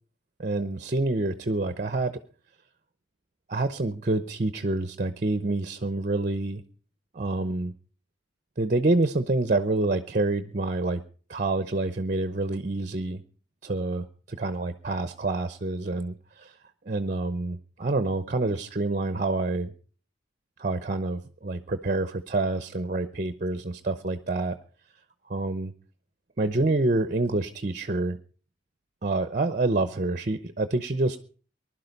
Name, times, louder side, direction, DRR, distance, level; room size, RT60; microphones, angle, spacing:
voice 1, 0.4-2.2 3.5-6.6 7.1-7.7 8.6-11.0 11.3-13.2 13.6-16.5 16.9-19.7 20.6-24.6 25.3-25.7 26.4-28.2 29.0-31.2, right 2 dB, 45° right, 11 dB, 0.8 m, -27 dB
20.0 x 11.5 x 5.3 m, 0.43 s
head